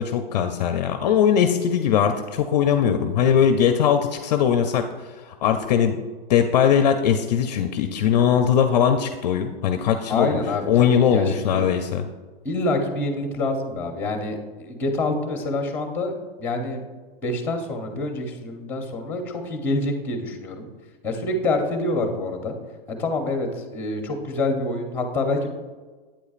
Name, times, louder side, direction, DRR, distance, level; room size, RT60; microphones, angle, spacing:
voice 1, 0.0-6.0 6.3-12.0, left 8 dB, 45° left, 7 dB, 0.5 m, -20 dB
voice 2, 10.1-11.7 12.4-16.1 16.4-16.8 17.2-20.7 21.0-22.5 22.9-25.5, left 2 dB, 5° left, 4 dB, 0.8 m, -26 dB
8.7 x 8.2 x 2.5 m, 1.4 s
hypercardioid pair, 155°, 30 cm